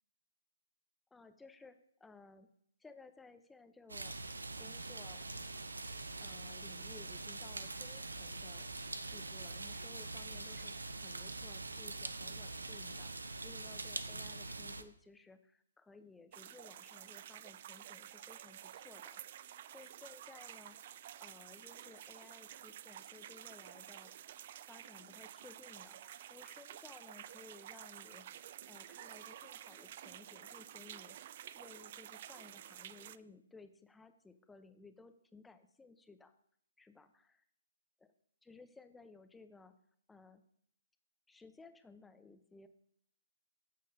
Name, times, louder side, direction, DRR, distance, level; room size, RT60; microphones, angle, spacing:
voice 1, 1.1-2.5 2.8-4.1 4.6-5.3 6.2-8.7 9.1-19.2 19.7-20.8 21.2-24.1 24.7-28.3 28.7-36.3 36.8-37.4 38.4-39.7 40.1-40.4 41.3-42.7, left 3 dB, 5° left, 9 dB, 0.7 m, -58 dB
sound 1, 3.9-14.8, right 3 dB, 85° right, 0.7 m, -44 dB
sound 2, 16.3-33.2, right 11 dB, 45° right, 0.3 m, -51 dB
14.0 x 6.5 x 2.7 m, 0.68 s
figure-of-eight pair, 135°, 0 cm